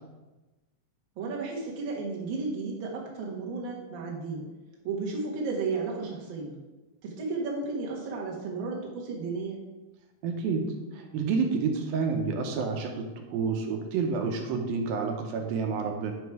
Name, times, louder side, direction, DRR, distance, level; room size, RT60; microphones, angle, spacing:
voice 1, 1.1-4.5 4.8-6.6 7.0-9.6, right 4 dB, 50° right, -2 dB, 1.5 m, -33 dB
voice 2, 10.2-10.6 10.9-12.9 13.3-16.1, right 5 dB, 80° right, 3 dB, 2.6 m, -29 dB
8.5 x 5.2 x 4.8 m, 1.1 s
omnidirectional pair, 4.3 m